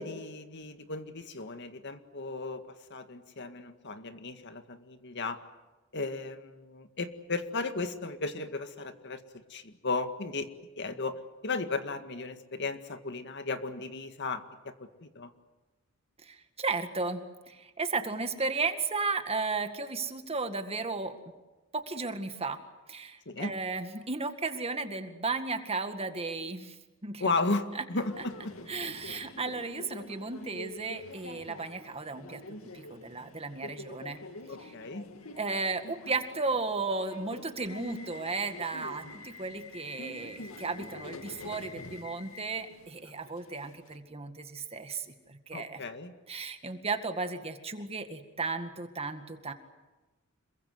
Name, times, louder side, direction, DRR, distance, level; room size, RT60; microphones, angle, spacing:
voice 1, 0.0-2.6 2.9-5.4 5.9-10.5 10.8-15.3 23.3-23.5 27.2-28.5 34.5-35.1 45.5-46.1, left 3 dB, 55° left, 8 dB, 2.0 m, -35 dB
voice 2, 16.2-21.2 21.7-22.6 22.9-26.8 27.0-27.3 27.7-27.8 28.2-28.3 28.7-34.2 34.6-34.7 35.4-45.8 46.3-49.5, right 3 dB, 30° right, 8 dB, 2.0 m, -34 dB
Subway metro underground, 28.0-44.0, left 2 dB, 80° left, 2.3 m, -46 dB
27.5 x 23.0 x 8.1 m, 1.1 s
head